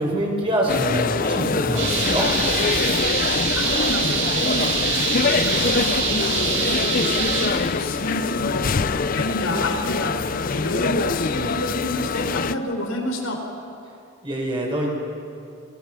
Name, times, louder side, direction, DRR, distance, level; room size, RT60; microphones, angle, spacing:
voice 1, 0.0-2.3 14.2-14.9, right 1 dB, 25° right, -1 dB, 5.4 m, -24 dB
sound 1, 0.7-12.5, left 5 dB, 40° left, 0.5 m, -24 dB
sound 2, 1.8-7.5, right 4 dB, 70° right, 6.7 m, -24 dB
voice 2, 3.1-4.7 5.0-8.7 9.1-13.4, left 1 dB, 80° left, 1 dB, 4.5 m, -29 dB
29.5 x 21.0 x 6.3 m, 2.6 s
head